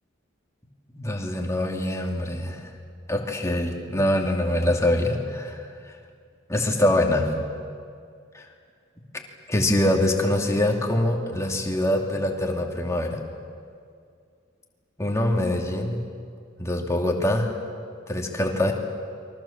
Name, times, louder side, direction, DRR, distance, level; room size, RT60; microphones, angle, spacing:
voice 1, 0.9-2.7 3.1-5.7 6.5-7.3 8.3-8.5 9.5-13.2 15.0-16.0 16.6-17.6 18.1-18.7, left 1 dB, 15° left, 1 dB, 2.9 m, -24 dB
30.0 x 23.5 x 7.5 m, 2.2 s
head